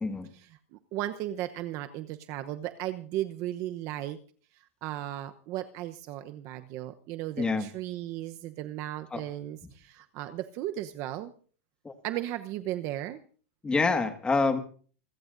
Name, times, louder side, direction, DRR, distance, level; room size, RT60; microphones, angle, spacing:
voice 1, 0.3-4.2 4.5-11.3 12.0-13.2, right 13 dB, 45° right, 9 dB, 0.9 m, -36 dB
voice 2, 7.4-7.7 9.1-9.2 11.8-11.9 13.6-14.6, left 3 dB, 15° left, 7 dB, 1.8 m, -26 dB
27.5 x 14.5 x 2.6 m, 0.42 s
supercardioid pair, 130°, 7 cm